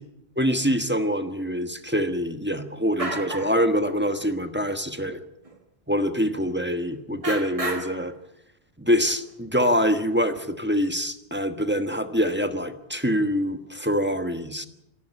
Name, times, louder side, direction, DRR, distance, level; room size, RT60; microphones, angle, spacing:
voice 1, 0.4-5.2 5.9-8.1 8.8-14.7, equal, 10° right, 8 dB, 1.3 m, -25 dB
sound 1, 2.6-2.7 3.0-3.6 3.9-4.3 5.0-5.1 5.5-5.6 6.8-6.9 7.2-8.1 9.1-9.2 9.6-10.4, right 2 dB, 35° right, 1.9 m, -33 dB
27.5 x 11.5 x 8.8 m, 0.83 s
omnidirectional pair, 1.0 m